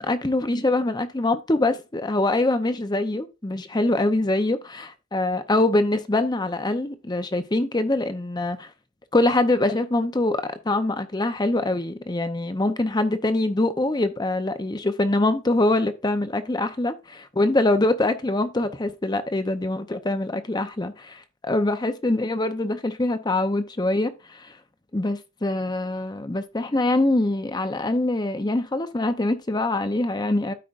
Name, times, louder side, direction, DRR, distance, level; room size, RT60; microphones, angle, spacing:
voice 1, 0.0-8.7 9.1-24.6 24.9-30.5, left 2 dB, 20° left, 0.6 m, -24 dB
12.5 x 5.0 x 2.5 m
head